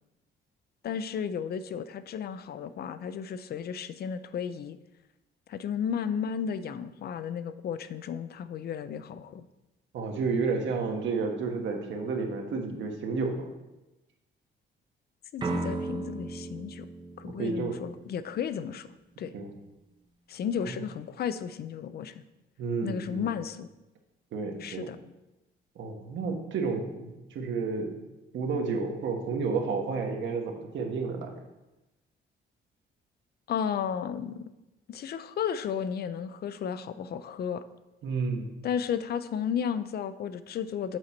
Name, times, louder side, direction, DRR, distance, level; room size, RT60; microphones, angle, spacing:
voice 1, 0.8-4.8 5.5-9.4 15.3-16.9 17.2-19.3 20.3-22.2 22.8-23.7 24.6-25.0 33.5-34.5 34.9-37.6 38.6-41.0, left 7 dB, 55° left, 13 dB, 0.5 m, -33 dB
voice 2, 9.9-13.5 17.2-17.8 19.3-19.5 22.6-23.3 24.3-24.9 25.7-28.0 28.3-31.3 38.0-38.5, right 4 dB, 70° right, 3 dB, 1.2 m, -31 dB
sound 1, 15.4-18.3, right 2 dB, 25° right, 0.7 m, -35 dB
7.8 x 4.0 x 4.4 m, 0.99 s
cardioid pair, 90°, 20 cm